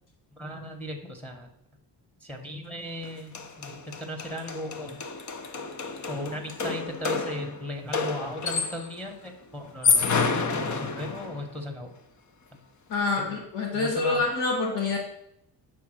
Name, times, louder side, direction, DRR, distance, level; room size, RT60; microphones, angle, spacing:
voice 1, 0.4-1.5 2.2-5.0 6.1-12.0 12.5-12.6 13.2-13.4 13.7-14.2, equal, 5° left, 2 dB, 1.0 m, -37 dB
sound 1, 3.0-3.1 3.3-9.0 9.6-11.5, left 4 dB, 45° left, 0.7 m, -29 dB
voice 2, 12.9-15.0, left 3 dB, 85° left, -3 dB, 2.0 m, -26 dB
7.5 x 3.5 x 6.2 m, 0.76 s
cardioid pair, 125°, 42 cm